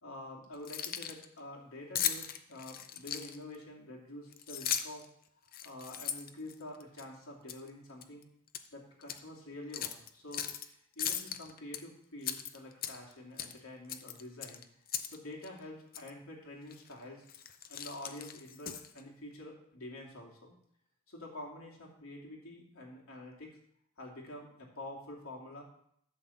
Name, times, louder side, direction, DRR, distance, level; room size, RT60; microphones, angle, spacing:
voice 1, 0.0-5.0 5.6-8.3 8.7-14.6 15.1-17.2 17.7-20.5 21.1-23.6 24.0-25.6, left 1 dB, 80° left, -2 dB, 2.5 m, -47 dB
Keys jangling, 0.5-1.2 1.9-3.5 4.3-5.0 5.5-7.0 7.5-7.7 8.0-8.7 9.0-9.2 9.7-10.6 11.0-11.8 12.2-13.1 13.4-13.6 13.9-15.2 15.4-15.5 15.9-16.1 16.7-16.9 17.3-19.0, left 9 dB, 40° left, 0.6 m, -37 dB
11.5 x 4.1 x 7.1 m, 0.71 s
head